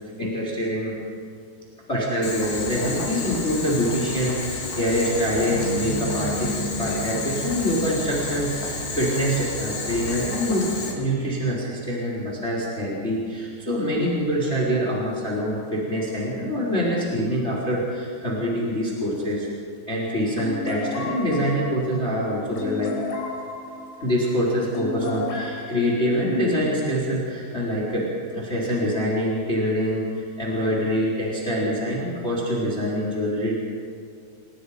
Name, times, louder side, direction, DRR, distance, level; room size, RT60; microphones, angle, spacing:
voice 1, 0.2-0.9 1.9-19.5 19.9-22.9 24.0-33.5, equal, 15° left, -5 dB, 4.0 m, -25 dB
Boiling, 2.2-10.9, left 3 dB, 55° left, 5.6 m, -31 dB
sound 1, 5.5-10.1, equal, 40° right, 7.3 m, -33 dB
sound 2, 20.4-26.6, left 3 dB, 90° left, 6.0 m, -34 dB
30.0 x 20.5 x 5.1 m, 2.2 s
omnidirectional pair, 5.6 m